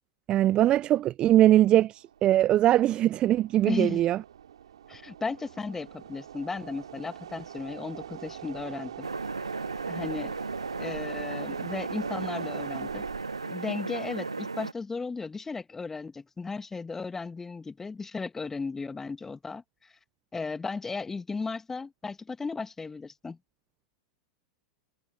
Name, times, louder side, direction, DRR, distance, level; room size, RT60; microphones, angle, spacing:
voice 1, 0.3-4.2, right 13 dB, 35° right, 0.5 m, -21 dB
sound 1, 1.9-13.5, right 9 dB, 70° right, 4.4 m, -43 dB
voice 2, 3.7-4.0 4.9-9.1 9.9-10.4 10.8-13.0 13.4-19.9 20.3-23.4, left 4 dB, 15° left, 2.2 m, -35 dB
sound 2, 9.0-14.7, right 3 dB, 90° right, 1.5 m, -35 dB
figure-of-eight pair, 95°, 3 cm